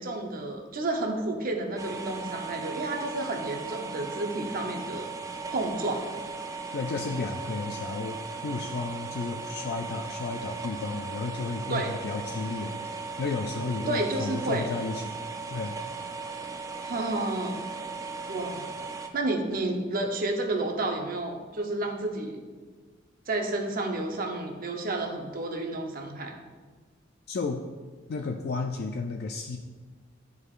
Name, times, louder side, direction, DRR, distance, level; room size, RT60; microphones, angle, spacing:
voice 1, 0.0-5.1 5.5-6.0 11.7-11.9 13.9-14.6 16.8-17.6 18.3-18.7 19.1-22.4 23.3-26.4, right 2 dB, 45° right, 2 dB, 0.7 m, -31 dB
sound 1, 1.8-19.1, right 4 dB, 15° right, 0.4 m, -37 dB
voice 2, 6.7-15.2 15.5-15.8 27.3-27.6 28.1-29.6, left 3 dB, 55° left, 3 dB, 0.4 m, -33 dB
10.5 x 4.8 x 2.4 m, 1.5 s
head